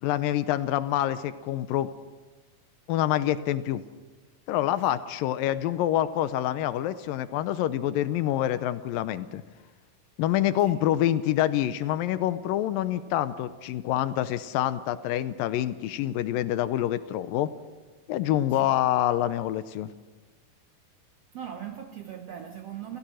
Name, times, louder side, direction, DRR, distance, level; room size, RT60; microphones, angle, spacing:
voice 1, 0.0-1.9 2.9-3.8 4.5-9.4 10.2-17.5 18.1-19.9, left 12 dB, 85° left, 2.5 m, -26 dB
voice 2, 21.3-23.0, right 9 dB, 65° right, 1.6 m, -39 dB
29.0 x 15.0 x 6.4 m
omnidirectional pair, 4.0 m